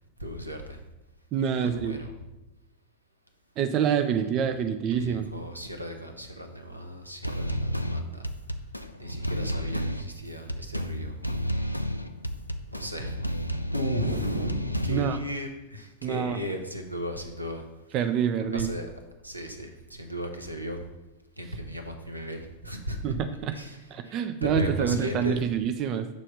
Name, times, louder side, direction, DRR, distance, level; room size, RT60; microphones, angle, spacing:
voice 1, 0.2-0.8 1.5-2.1 4.9-8.2 9.0-11.2 12.7-13.3 13.7-17.6 18.5-18.9 19.2-20.8 21.4-23.2 23.5-25.4, equal, 85° right, 4 dB, 0.6 m, -35 dB
voice 2, 1.3-2.0 3.6-5.3 14.9-15.2 16.0-16.4 17.9-18.7 23.0-23.5 23.9-26.1, right 8 dB, 35° right, 9 dB, 0.3 m, -27 dB
sound 1, 7.2-15.2, equal, 90° left, 0.3 m, -31 dB
6.2 x 3.2 x 5.3 m, 1.0 s
figure-of-eight pair, 90°, 0 cm